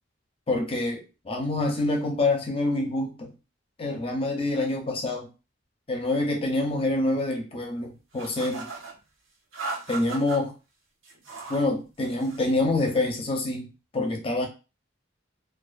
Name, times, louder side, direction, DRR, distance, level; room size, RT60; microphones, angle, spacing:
voice 1, 0.5-3.3 3.8-5.3 5.9-8.7 9.9-10.5 11.5-14.5, left 2 dB, 30° left, 1 dB, 0.6 m, -26 dB
sound 1, 8.1-8.9 9.5-10.4 11.0-11.7 12.0-12.6, right 4 dB, 85° right, 0.8 m, -37 dB
2.4 x 2.3 x 2.3 m, 0.31 s
head